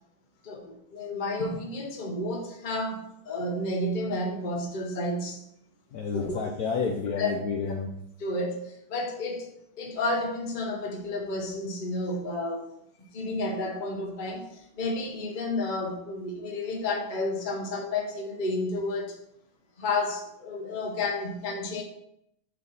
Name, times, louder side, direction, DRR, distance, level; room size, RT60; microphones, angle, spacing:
voice 1, 0.4-5.4 6.1-6.4 7.2-7.3 8.2-9.5 9.8-12.7 13.0-14.5 14.7-19.2 19.8-21.8, left 2 dB, 35° left, 1 dB, 0.8 m, -31 dB
voice 2, 5.9-7.9, left 5 dB, 80° left, 0 dB, 0.8 m, -30 dB
8.2 x 3.4 x 4.1 m, 0.75 s
omnidirectional pair, 2.4 m